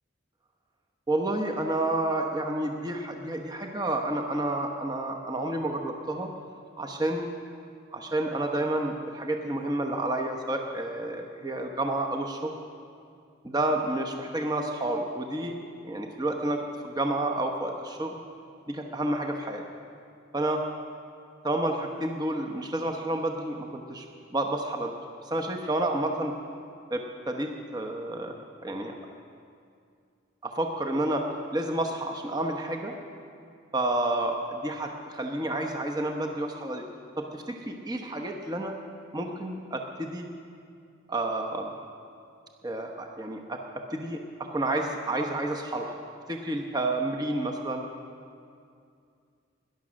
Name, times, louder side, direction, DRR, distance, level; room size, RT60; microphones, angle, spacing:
voice 1, 1.1-6.3 6.8-7.3 7.9-12.5 13.4-18.2 18.7-19.6 20.3-20.6 21.4-24.0 24.3-24.9 25.3-26.3 26.9-28.9 30.4-32.9 33.7-36.8 37.2-38.8 39.1-40.3 41.1-41.7 42.6-43.6 43.9-44.2 44.5-46.0 46.3-47.8, right 1 dB, 20° right, 2 dB, 1.0 m, -30 dB
19.5 x 11.0 x 6.4 m, 2.4 s
head